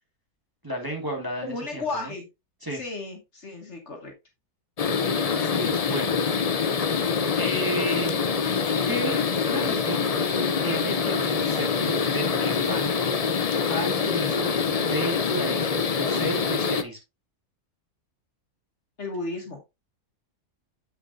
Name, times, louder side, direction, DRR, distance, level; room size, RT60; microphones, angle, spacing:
voice 1, 0.6-2.1 2.6-2.8 5.3-6.1 7.3-8.1 8.9-9.2 9.5-10.1 10.6-13.0 13.7-14.5 14.8-17.0, right 1 dB, 15° right, 0 dB, 1.8 m, -32 dB
voice 2, 1.4-2.3 2.7-4.1 19.0-19.6, left 3 dB, 45° left, 2 dB, 1.7 m, -34 dB
sound 1, 4.8-16.8, left 5 dB, 80° left, 0.3 m, -25 dB
7.3 x 6.9 x 2.5 m, 0.23 s
omnidirectional pair, 1.6 m